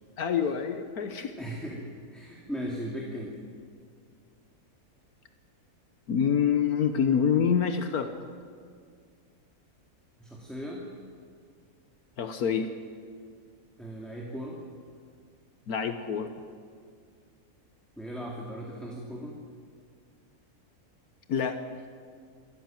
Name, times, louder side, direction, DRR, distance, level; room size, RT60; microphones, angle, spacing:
voice 1, 0.2-1.3 6.1-8.1 12.2-12.7 15.7-16.3 21.3-21.6, left 7 dB, 75° left, 8 dB, 1.5 m, -26 dB
voice 2, 1.4-1.8 2.1-3.4 10.2-10.9 13.8-14.6 18.0-19.4, equal, ahead, -2 dB, 2.6 m, -37 dB
27.0 x 13.0 x 9.1 m, 2.1 s
omnidirectional pair, 1.6 m